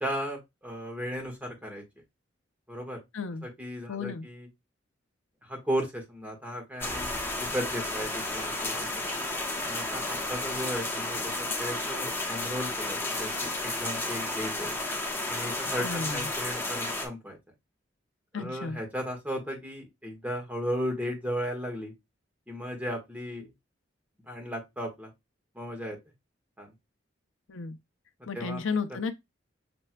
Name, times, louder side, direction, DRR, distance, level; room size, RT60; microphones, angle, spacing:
voice 1, 0.0-1.8 2.7-3.0 3.4-4.5 5.4-9.2 9.7-14.8 15.3-17.4 18.3-21.9 22.5-23.5 24.3-25.1 25.5-26.0 26.6-26.7 28.3-28.6, equal, 10° right, 1.4 m, -35 dB
voice 2, 3.1-3.5 3.9-4.3 15.8-16.3 18.3-18.8 27.5-27.8 28.3-29.1, left 4 dB, 85° left, 0.5 m, -33 dB
sound 1, 6.8-17.1, left 2 dB, 10° left, 0.9 m, -32 dB
6.0 x 3.3 x 2.2 m
head